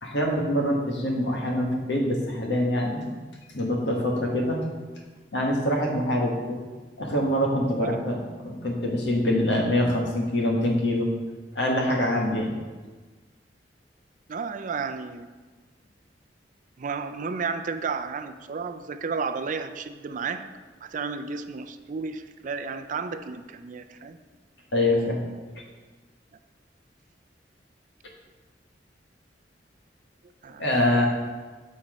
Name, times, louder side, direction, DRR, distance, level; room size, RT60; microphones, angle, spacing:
voice 1, 0.0-3.0 3.5-4.6 5.3-6.6 7.0-11.1 11.5-12.5 24.7-25.2 30.6-31.1, left 1 dB, 80° left, -1 dB, 1.6 m, -24 dB
voice 2, 14.3-15.3 16.8-20.5 20.8-24.2 30.4-30.7, right 5 dB, 45° right, 9 dB, 0.4 m, -32 dB
7.9 x 4.3 x 5.1 m, 1.4 s
head